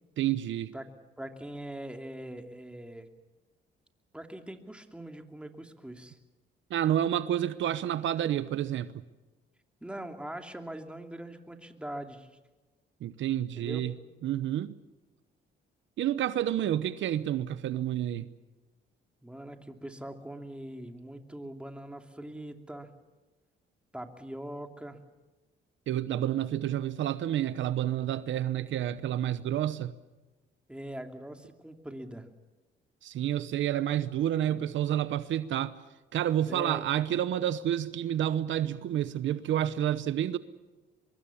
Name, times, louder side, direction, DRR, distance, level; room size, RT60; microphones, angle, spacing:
voice 1, 0.2-0.7 6.7-9.0 13.0-13.9 14.2-14.7 16.0-18.3 25.9-29.9 33.0-35.8 36.1-40.4, right 11 dB, 75° right, 0.9 m, -29 dB
voice 2, 1.2-3.1 4.1-6.2 9.8-12.4 13.6-13.8 19.2-22.9 23.9-25.0 30.7-32.3 36.5-36.8, right 1 dB, 5° right, 2.8 m, -42 dB
24.0 x 23.0 x 7.1 m
cardioid pair, 90°, 20 cm